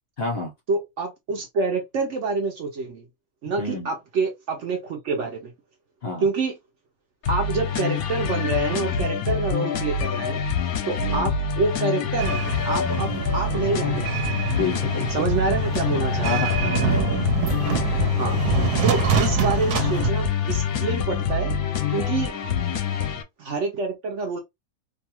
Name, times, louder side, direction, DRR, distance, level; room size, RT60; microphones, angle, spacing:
voice 1, 0.2-0.5 3.6-3.9 6.0-6.3 11.0-11.3 13.1-13.2 14.5-15.1 16.2-16.9 21.9-22.1, left 3 dB, 50° left, 0.8 m, -29 dB
voice 2, 0.7-3.1 3.4-5.5 6.2-6.5 7.3-10.4 10.9-14.2 15.1-16.4 18.2-18.5 18.8-21.6 21.9-22.3 23.4-24.4, right 4 dB, 60° right, 0.8 m, -27 dB
sound 1, 7.2-23.2, left 6 dB, 75° left, 1.0 m, -26 dB
sound 2, 12.2-20.1, right 7 dB, 85° right, 1.1 m, -26 dB
2.7 x 2.4 x 2.9 m
omnidirectional pair, 1.6 m